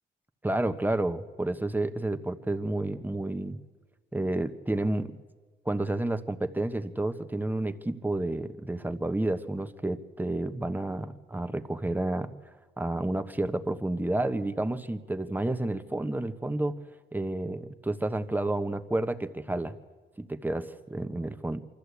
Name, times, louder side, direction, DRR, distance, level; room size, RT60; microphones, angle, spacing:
voice 1, 0.4-3.6 4.1-5.1 5.6-12.3 12.8-16.7 17.1-19.7 20.2-21.6, right 2 dB, 10° right, 9 dB, 1.2 m, -30 dB
24.5 x 13.5 x 8.4 m, 1.4 s
cardioid pair, 90°, 20 cm